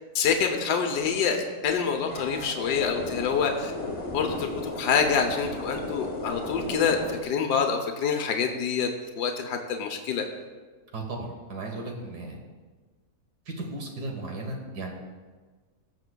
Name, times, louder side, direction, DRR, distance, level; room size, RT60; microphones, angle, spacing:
voice 1, 0.1-3.7 4.1-8.9 9.2-10.2, left 6 dB, 85° left, 4 dB, 1.4 m, -26 dB
sound 1, 2.1-7.2, left 2 dB, 30° left, 0.6 m, -35 dB
voice 2, 10.9-12.4 13.6-14.9, right 2 dB, 85° right, 1 dB, 1.9 m, -35 dB
19.5 x 6.9 x 2.2 m, 1.4 s
omnidirectional pair, 1.7 m